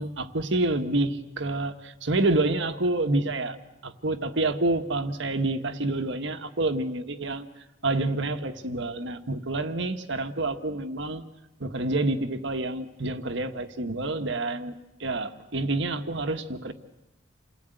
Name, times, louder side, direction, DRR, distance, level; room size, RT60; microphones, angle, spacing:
voice 1, 0.0-3.6 3.8-7.5 7.8-11.2 11.6-16.7, right 2 dB, 65° right, 7 dB, 1.5 m, -28 dB
28.0 x 18.0 x 9.2 m, 0.99 s
head